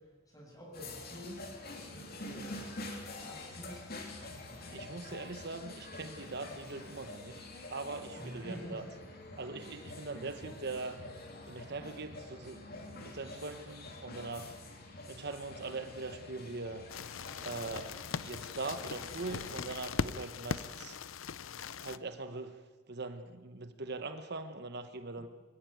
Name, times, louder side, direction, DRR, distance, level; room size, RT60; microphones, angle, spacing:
voice 1, 0.0-1.4 1.7-3.8 8.2-8.9, equal, 15° left, -2 dB, 7.8 m, -48 dB
sound 1, 0.7-19.5, left 2 dB, 50° left, 3.2 m, -47 dB
voice 2, 4.7-8.8 9.4-11.0 11.5-14.6 15.1-16.8 17.4-21.0 21.8-22.6 22.9-25.3, right 3 dB, 55° right, 9 dB, 1.1 m, -42 dB
sound 2, 16.9-22.0, left 5 dB, 80° left, 0.7 m, -40 dB
24.0 x 14.5 x 9.3 m, 1.4 s
head